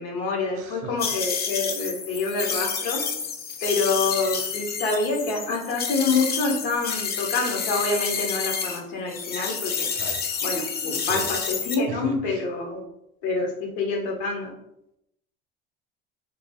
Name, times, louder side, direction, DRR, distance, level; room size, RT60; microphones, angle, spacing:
voice 1, 0.0-3.0 3.6-9.9 10.4-12.8 13.2-14.5, left 3 dB, 65° left, 1 dB, 0.8 m, -27 dB
voice 2, 0.5-1.0 9.9-10.2 11.0-11.3 11.9-12.4, right 5 dB, 50° right, 4 dB, 0.6 m, -37 dB
sound 1, 1.0-8.8 9.1-11.8, left 6 dB, 35° left, 0.5 m, -29 dB
2.3 x 2.1 x 3.3 m, 0.81 s
hypercardioid pair, 65°, 29 cm